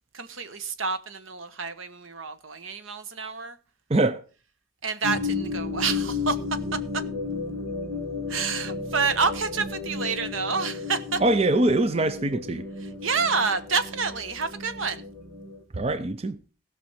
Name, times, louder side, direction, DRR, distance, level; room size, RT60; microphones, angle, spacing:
voice 1, 0.1-3.6 4.8-6.4 8.3-11.2 12.8-15.0, right 5 dB, 80° right, 1.2 m, -28 dB
voice 2, 3.9-4.2 11.2-12.6 15.7-16.4, right 2 dB, 30° right, 0.5 m, -23 dB
sound 1, 5.0-15.6, left 4 dB, 60° right, 2.8 m, -33 dB
16.5 x 6.1 x 5.7 m
head